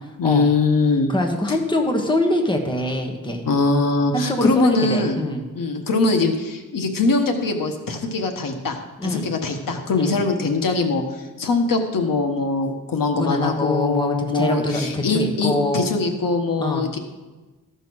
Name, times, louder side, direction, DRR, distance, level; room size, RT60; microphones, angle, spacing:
voice 1, 0.2-1.1 3.4-5.2 5.5-11.0 11.4-17.0, left 3 dB, 80° left, 4 dB, 1.3 m, -22 dB
voice 2, 1.1-3.4 4.1-5.4 9.0-9.3 10.0-10.2 13.1-15.9 16.6-16.9, left 1 dB, 15° left, 3 dB, 1.2 m, -24 dB
14.0 x 5.4 x 6.2 m, 1.2 s
wide cardioid pair, 170°, 33 cm